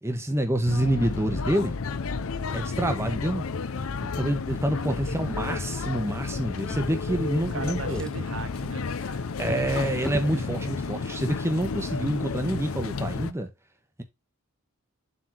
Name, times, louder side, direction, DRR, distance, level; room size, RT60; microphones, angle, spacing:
voice 1, 0.0-1.8 2.5-3.4 4.2-8.0 9.4-13.5, right 1 dB, 15° right, 1.3 m, -27 dB
sound 1, 0.7-13.3, left 4 dB, 80° left, 0.6 m, -32 dB
voice 2, 4.7-5.2 7.1-7.2 7.5-10.5, right 4 dB, 65° right, 0.7 m, -40 dB
Drawer open or close, 6.5-7.5 7.8-10.4 11.3-11.5 11.8-11.9, equal, 5° left, 0.8 m, -39 dB
7.7 x 5.7 x 2.9 m
head